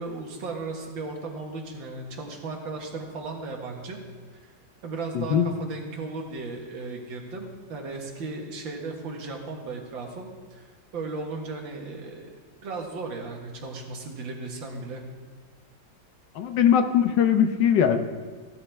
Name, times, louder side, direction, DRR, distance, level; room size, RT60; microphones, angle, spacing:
voice 1, 0.0-4.0 4.3-4.5 4.8-10.6 10.9-12.3 12.6-15.0, right 3 dB, 80° right, 1 dB, 2.3 m, -36 dB
voice 2, 5.1-5.5 16.4-18.0, left 8 dB, 70° left, 8 dB, 1.5 m, -20 dB
16.0 x 12.5 x 3.5 m, 1.4 s
omnidirectional pair, 2.1 m